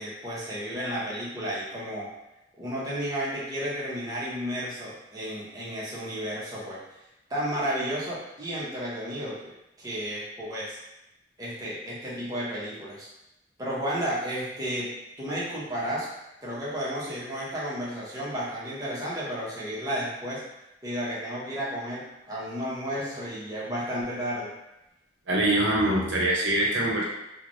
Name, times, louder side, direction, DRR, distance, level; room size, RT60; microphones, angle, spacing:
voice 1, 0.0-2.1 2.6-6.8 7.3-9.5 9.8-10.8 11.4-13.1 13.6-14.9 15.2-16.1 16.4-20.4 20.8-24.5, equal, 20° right, -7 dB, 0.7 m, -32 dB
voice 2, 25.3-27.0, right 1 dB, 75° right, -3 dB, 0.7 m, -24 dB
3.1 x 2.1 x 2.5 m, 0.91 s
head